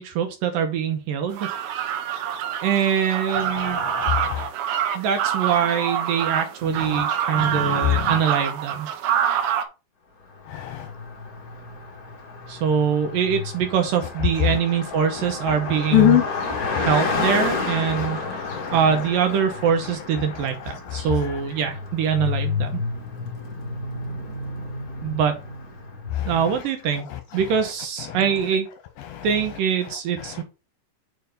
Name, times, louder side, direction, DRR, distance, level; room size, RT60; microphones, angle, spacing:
voice 1, 0.0-1.5 2.6-3.8 4.9-8.9 12.5-16.2 16.7-18.4 18.7-22.7 25.0-25.4 26.3-27.1 27.3-28.7 29.2-30.4, right 7 dB, 70° right, 2.3 m, -23 dB
sound 1, 1.3-9.6, right 9 dB, 90° right, 3.0 m, -26 dB
voice 2, 3.6-4.4 6.8-7.0 7.3-8.1 10.5-10.9 15.9-16.9 18.0-18.1 18.5-18.7 20.9-21.1 26.2-26.3 29.1-29.3, left 13 dB, 75° left, 2.3 m, -23 dB
Car passing by, 10.4-26.4, left 4 dB, 55° left, 1.0 m, -31 dB
6.8 x 4.7 x 5.2 m
omnidirectional pair, 4.6 m